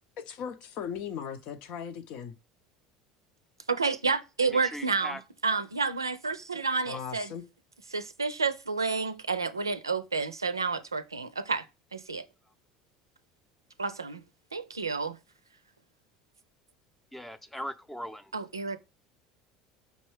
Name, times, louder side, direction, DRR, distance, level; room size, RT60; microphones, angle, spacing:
voice 1, 0.2-2.3 6.8-7.4, left 7 dB, 55° left, 0.8 m, -38 dB
voice 2, 3.7-5.2 5.4-7.3 7.9-11.7 11.9-12.2 13.8-14.2 14.5-15.2 18.3-18.8, right 4 dB, 90° right, 0.4 m, -30 dB
voice 3, 4.4-5.2 6.9-7.0 12.5-12.6 17.1-18.3, equal, 5° left, 0.6 m, -40 dB
5.3 x 3.1 x 3.1 m
figure-of-eight pair, 70°, 2 cm